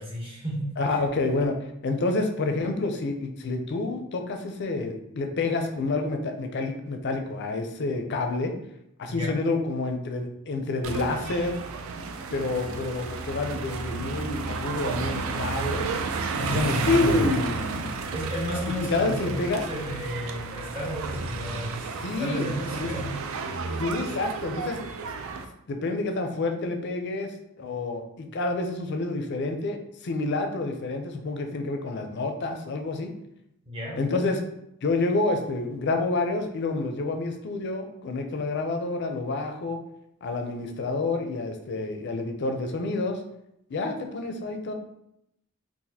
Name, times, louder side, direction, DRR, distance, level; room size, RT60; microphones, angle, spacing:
voice 1, 0.0-0.7 9.1-9.4 16.3-17.0 18.1-23.2 33.6-34.0, equal, 25° right, -3 dB, 0.8 m, -33 dB
voice 2, 0.8-1.6 1.8-8.5 9.0-11.6 12.3-15.8 16.5-17.9 18.8-19.6 22.0-22.5 22.8-22.9 23.8-24.8 25.7-33.1 34.0-34.4 34.8-39.8 40.2-43.2 43.7-44.7, left 3 dB, 50° left, 5 dB, 0.4 m, -28 dB
sound 1, 10.8-25.4, right 4 dB, 70° right, 0.4 m, -32 dB
4.0 x 2.4 x 2.7 m, 0.79 s
head